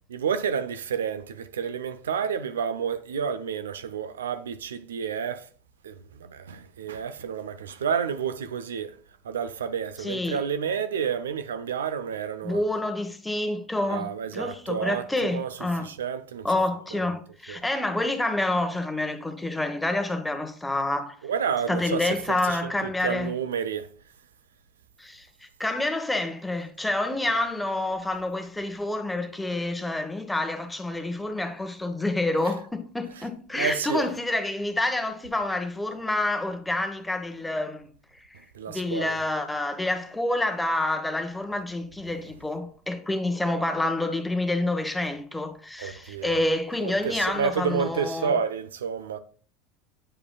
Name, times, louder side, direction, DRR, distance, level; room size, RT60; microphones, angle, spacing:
voice 1, 0.1-5.5 5.8-9.0 9.2-12.6 13.9-16.5 16.9-17.1 17.5-17.6 21.2-22.2 22.4-23.9 27.2-27.4 33.6-34.1 38.5-39.2 45.8-46.4 46.8-49.2, right 7 dB, 85° right, 0.4 m, -30 dB
voice 2, 10.0-10.4 12.4-15.9 16.4-21.1 21.7-23.3 25.0-37.9 38.3-38.4 38.7-48.3, left 2 dB, 10° left, 0.9 m, -28 dB
8.6 x 4.9 x 2.2 m
hypercardioid pair, 85°, 0 cm